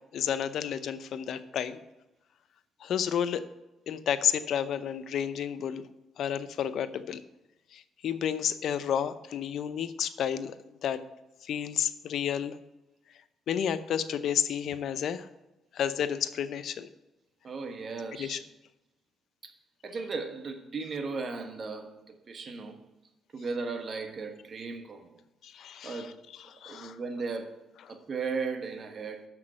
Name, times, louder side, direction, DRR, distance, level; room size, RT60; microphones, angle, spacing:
voice 1, 0.1-1.8 2.8-3.4 3.9-5.8 6.2-7.2 7.7-10.6 10.8-11.0 11.4-12.6 13.5-15.3 15.7-16.9 18.2-18.4 25.4-26.1 26.6-27.0, left 9 dB, 70° left, 0.6 m, -31 dB
voice 2, 17.4-18.4 19.4-19.5 19.8-22.8 23.3-25.1 25.8-26.2 26.6-29.3, right 4 dB, 45° right, 1.3 m, -36 dB
6.9 x 6.0 x 7.6 m
cardioid pair, 90°, 0 cm